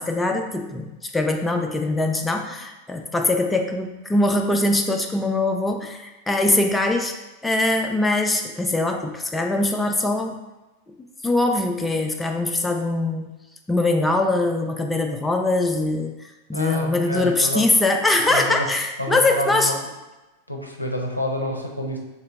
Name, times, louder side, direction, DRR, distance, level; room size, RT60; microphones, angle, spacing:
voice 1, 0.0-7.1 7.4-10.4 11.2-13.2 13.7-16.1 16.5-19.7, left 2 dB, 10° left, 3 dB, 0.3 m, -22 dB
voice 2, 16.5-17.6 18.3-18.7 19.0-19.8 20.5-22.0, left 1 dB, 90° left, 0 dB, 0.5 m, -28 dB
3.3 x 2.8 x 3.4 m, 1.0 s
figure-of-eight pair, 90°, 0 cm